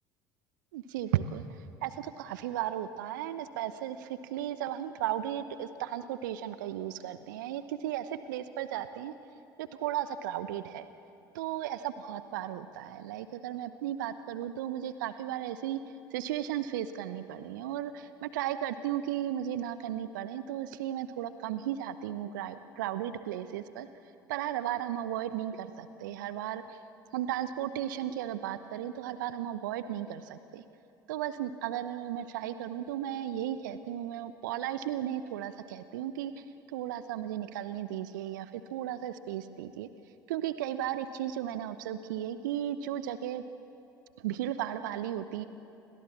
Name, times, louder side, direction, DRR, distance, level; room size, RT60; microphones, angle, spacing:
voice 1, 0.7-1.4 1.8-9.1 9.6-10.9 11.3-15.8 16.1-23.9 24.3-26.8 27.1-30.6 31.1-39.9 40.3-43.4 44.2-45.4, right 11 dB, 70° right, 12 dB, 0.9 m, -35 dB
30.0 x 22.5 x 7.4 m, 3.0 s
figure-of-eight pair, 65°, 11 cm